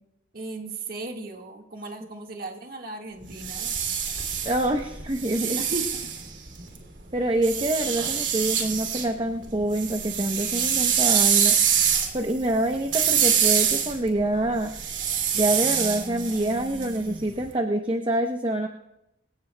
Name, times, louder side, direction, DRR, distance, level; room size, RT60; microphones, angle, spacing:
voice 1, 0.3-3.7 5.6-5.9, right 2 dB, 55° right, 2 dB, 1.6 m, -36 dB
sound 1, 3.2-6.8 7.4-9.1 9.4-17.3, right 8 dB, 80° right, 2.7 m, -25 dB
voice 2, 4.4-5.6 7.1-11.5 12.1-14.7 15.3-18.7, right 1 dB, 30° right, 4 dB, 0.8 m, -26 dB
24.5 x 16.5 x 2.2 m, 0.88 s
head